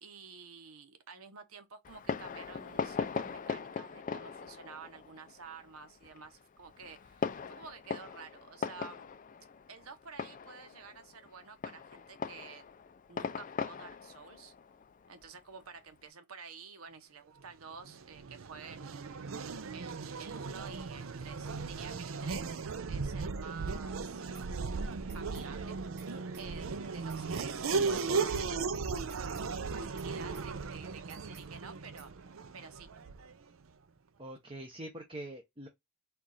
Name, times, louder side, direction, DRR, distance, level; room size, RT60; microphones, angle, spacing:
voice 1, 0.0-9.1 9.7-12.7 13.1-14.5 15.1-19.1 19.7-24.3 25.1-25.8 26.1-32.1 32.5-32.9, right 5 dB, 90° right, 0.9 m, -50 dB
Fireworks, 1.8-16.0, left 5 dB, 40° left, 0.4 m, -40 dB
Race car auto racing / Accelerating revving vroom, 17.8-33.4, right 4 dB, 70° right, 0.5 m, -37 dB
sound 1, 24.3-24.5 24.8-25.5 25.8-26.1 26.3-26.5 26.8-27.5 27.8-28.1 28.3-28.5 28.8-29.5 29.8-30.1 30.3-30.5 30.8-31.5 31.8-32.1, right 6 dB, 50° right, 1.2 m, -56 dB
voice 2, 27.2-28.3 34.2-35.7, right 1 dB, 25° right, 0.7 m, -45 dB
4.5 x 2.5 x 3.9 m
head